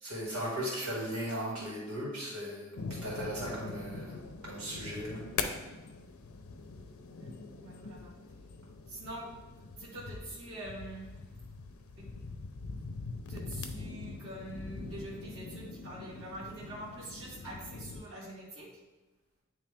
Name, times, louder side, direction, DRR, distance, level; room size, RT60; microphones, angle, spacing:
voice 1, 0.0-2.7 3.0-4.2 4.4-5.2, equal, 85° right, -5 dB, 2.0 m, -37 dB
sound 1, 2.8-18.0, left 4 dB, 85° left, 0.6 m, -43 dB
voice 2, 7.2-8.1 8.9-9.3 9.6-11.1 12.0-12.1 13.3-18.7, right 1 dB, 60° right, -7 dB, 1.9 m, -45 dB
9.2 x 3.2 x 3.4 m, 1.1 s
head